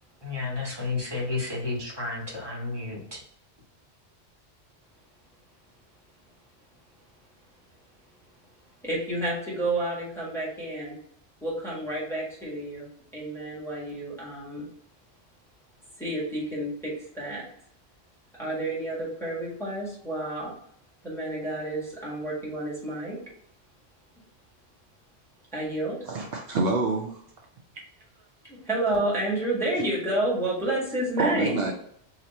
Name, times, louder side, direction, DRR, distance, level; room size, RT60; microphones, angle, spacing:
voice 1, 0.2-3.2, left 3 dB, 25° right, -4 dB, 1.3 m, -31 dB
voice 2, 8.8-11.0 11.4-14.7 16.0-17.4 18.4-20.5 21.0-23.2 25.5-26.0 28.5-31.6, right 1 dB, ahead, -6 dB, 1.5 m, -30 dB
voice 3, 26.1-27.2 31.2-31.7, right 3 dB, 70° right, 1 dB, 0.8 m, -27 dB
3.0 x 2.9 x 4.1 m, 0.70 s
omnidirectional pair, 1.1 m